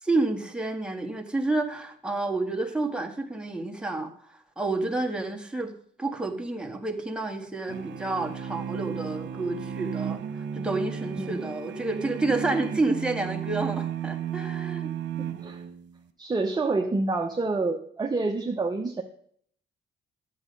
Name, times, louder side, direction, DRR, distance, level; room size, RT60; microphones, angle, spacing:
voice 1, 0.0-5.7 6.0-14.9, right 2 dB, 5° right, 3 dB, 1.6 m, -29 dB
sound 1, 7.7-16.0, right 8 dB, 65° right, 1.1 m, -34 dB
voice 2, 15.2-15.6 16.2-19.0, right 3 dB, 20° right, 2 dB, 0.9 m, -28 dB
10.5 x 8.2 x 5.4 m, 0.64 s
cardioid pair, 90°, 20 cm